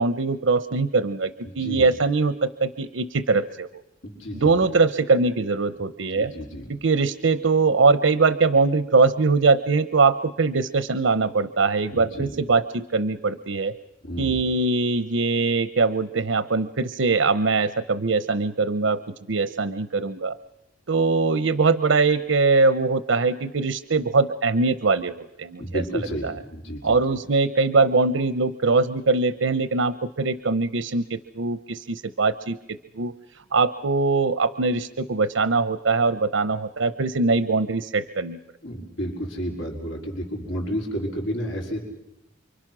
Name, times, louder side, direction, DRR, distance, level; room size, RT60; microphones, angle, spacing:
voice 1, 0.0-3.7 4.3-6.3 6.7-13.7 14.2-19.0 19.3-20.4 20.9-25.6 25.9-26.3 26.8-33.1 33.5-38.4, right 4 dB, 85° right, 12 dB, 0.8 m, -22 dB
voice 2, 1.4-1.9 4.0-4.7 6.2-6.7 11.9-12.3 14.0-14.4 25.6-27.0 38.6-41.8, equal, 85° left, 1 dB, 4.8 m, -31 dB
29.0 x 24.5 x 6.1 m, 0.91 s
head